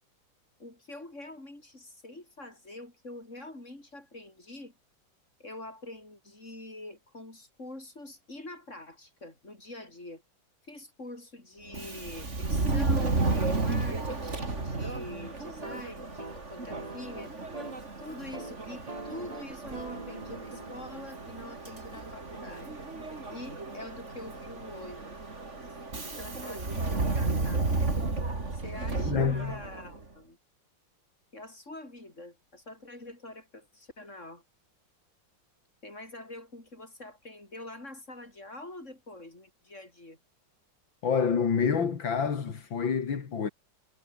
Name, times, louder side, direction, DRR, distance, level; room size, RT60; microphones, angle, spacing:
voice 1, 0.6-4.7 5.4-10.2 10.7-17.3 18.0-22.8 23.3-25.1 26.0-27.7 28.5-30.4 31.3-34.4 35.8-40.2, left 2 dB, 35° left, 7.5 m, -45 dB
Subway metro underground, 11.7-30.0, right 3 dB, 35° right, 3.6 m, -33 dB
sound 1, 15.5-17.9 18.2-18.5 18.9-22.7, right 2 dB, 20° right, 2.3 m, -45 dB
voice 2, 29.1-29.6 41.0-43.5, left 6 dB, 80° left, 3.0 m, -27 dB
omnidirectional pair, 2.1 m